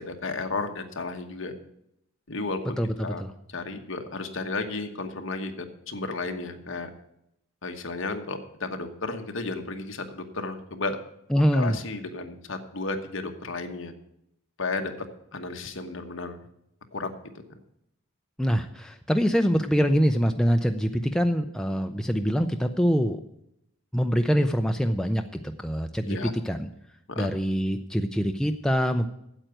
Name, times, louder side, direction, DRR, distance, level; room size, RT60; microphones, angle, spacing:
voice 1, 0.0-1.5 2.3-2.6 3.0-3.2 3.5-5.5 5.9-6.9 7.6-11.0 11.5-13.9 14.6-14.9 15.3-16.4 16.9-17.1 26.1-26.3 27.1-27.3, left 3 dB, 60° left, 5 dB, 1.2 m, -33 dB
voice 2, 2.8-3.3 11.3-11.8 18.4-23.2 23.9-26.2 26.5-26.7 27.2-29.1, equal, 5° left, 5 dB, 0.4 m, -24 dB
8.9 x 7.9 x 9.0 m, 0.79 s
head